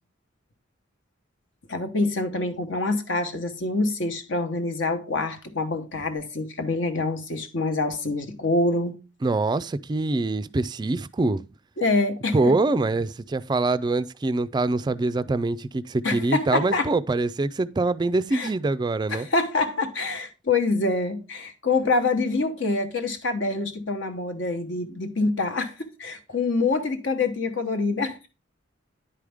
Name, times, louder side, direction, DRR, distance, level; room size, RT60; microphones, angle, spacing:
voice 1, 1.7-8.9 11.8-12.5 16.0-16.9 18.3-18.5 19.1-28.3, left 3 dB, 70° left, 1.2 m, -26 dB
voice 2, 9.2-11.4 12.3-19.3, right 2 dB, 20° right, 0.3 m, -24 dB
10.0 x 4.9 x 3.5 m
head